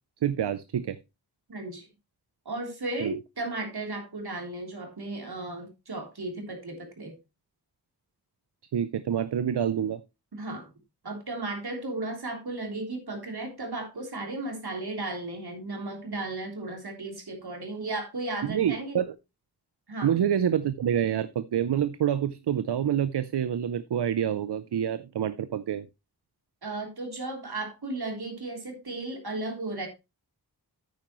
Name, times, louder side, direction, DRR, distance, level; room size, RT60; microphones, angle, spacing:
voice 1, 0.2-1.0 3.0-3.1 8.7-10.0 18.4-19.1 20.0-25.9, right 9 dB, 90° right, 14 dB, 0.6 m, -27 dB
voice 2, 1.5-1.9 2.5-7.2 10.3-10.7 11.0-19.0 19.9-20.1 26.6-29.9, right 2 dB, 70° right, 2 dB, 3.5 m, -35 dB
9.3 x 9.2 x 3.0 m, 0.25 s
wide cardioid pair, 65°, 39 cm